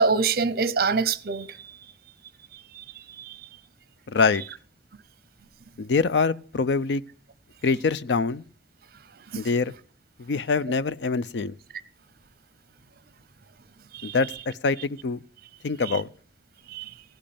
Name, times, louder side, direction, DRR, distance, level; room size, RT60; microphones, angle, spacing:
voice 1, 0.0-1.9 2.5-3.5 9.3-9.5 13.9-14.2 15.8-16.0 16.7-16.9, right 4 dB, 60° right, 0.7 m, -26 dB
voice 2, 4.1-4.4 5.8-7.0 7.6-8.4 9.3-9.7 10.2-11.6 14.0-15.2 15.6-16.1, left 4 dB, 75° left, 0.5 m, -24 dB
15.5 x 5.3 x 8.6 m
head